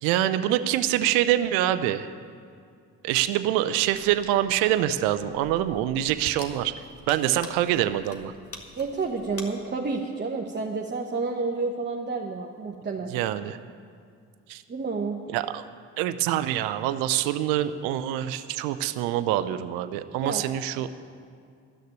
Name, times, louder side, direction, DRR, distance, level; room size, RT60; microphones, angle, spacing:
voice 1, 0.0-2.1 3.0-6.7 7.1-8.3 13.1-13.6 14.5-14.6 15.3-15.7 16.0-20.9, right 12 dB, 85° right, 11 dB, 0.6 m, -25 dB
sound 1, 3.8-9.4, left 2 dB, 40° left, 1.9 m, -46 dB
voice 2, 8.7-13.2 14.7-15.2 20.2-20.4, right 4 dB, 30° right, 0 dB, 1.2 m, -30 dB
13.5 x 6.5 x 9.3 m, 2.2 s
hypercardioid pair, 55°, 34 cm